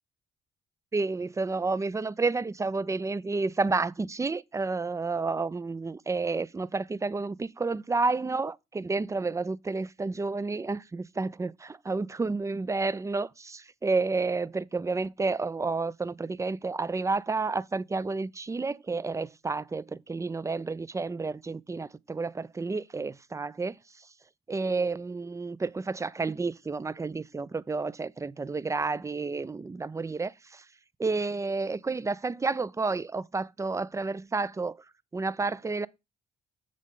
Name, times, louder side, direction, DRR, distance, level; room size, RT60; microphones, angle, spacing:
voice 1, 0.9-23.8 24.5-30.6 31.0-34.8 35.1-35.9, right 3 dB, 15° right, 0.4 m, -30 dB
7.4 x 6.6 x 3.7 m
cardioid pair, 90°, 20 cm